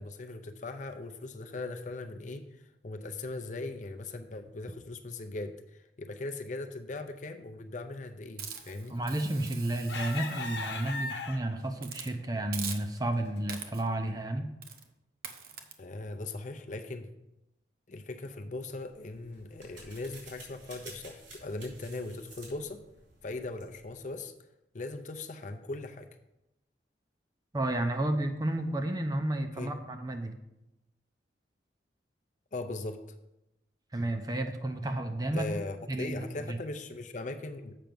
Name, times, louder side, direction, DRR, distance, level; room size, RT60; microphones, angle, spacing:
voice 1, 0.0-2.5 2.8-9.0 15.8-17.1 17.9-22.8 23.2-24.3 24.7-26.1 29.6-29.7 32.5-33.0 35.3-37.8, left 2 dB, 40° left, 6 dB, 0.6 m, -39 dB
Hiss, 8.4-11.3 11.8-12.1 12.5-13.1 13.5-14.0 14.6-14.9 15.2-15.7, right 7 dB, 50° right, 0.8 m, -43 dB
voice 2, 8.9-14.5 27.5-30.4 33.9-35.5 35.9-36.2 36.5-36.6, right 1 dB, 20° right, 6 dB, 0.6 m, -32 dB
sound 1, 9.1-9.4 9.9-11.7 12.3-12.4 12.8-13.0, left 4 dB, 70° left, 1.0 m, -37 dB
sound 2, 18.8-24.1, right 2 dB, 80° right, 3.5 m, -52 dB
7.5 x 5.8 x 5.2 m, 0.90 s
head